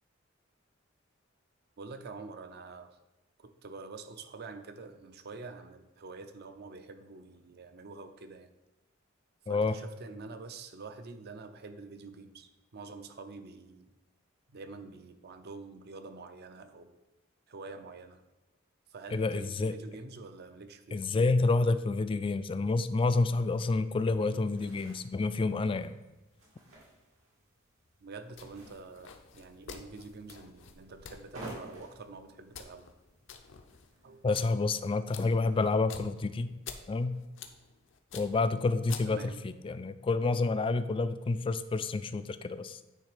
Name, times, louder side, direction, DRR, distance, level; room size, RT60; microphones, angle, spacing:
voice 1, 1.8-3.0 3.4-8.5 9.5-13.9 14.5-17.0 17.5-18.2 18.9-21.0 28.0-32.9 34.0-34.2 39.0-39.4, right 3 dB, 50° right, 8 dB, 0.6 m, -47 dB
voice 2, 9.5-9.8 19.1-19.7 20.9-26.0 34.2-36.5 36.9-37.2 38.1-42.8, left 3 dB, 25° left, 12 dB, 0.3 m, -29 dB
sound 1, 23.9-34.2, right 1 dB, 85° right, 2.2 m, -53 dB
sound 2, 28.3-39.5, left 7 dB, 65° left, 0.6 m, -50 dB
9.1 x 3.3 x 4.9 m, 1.1 s
head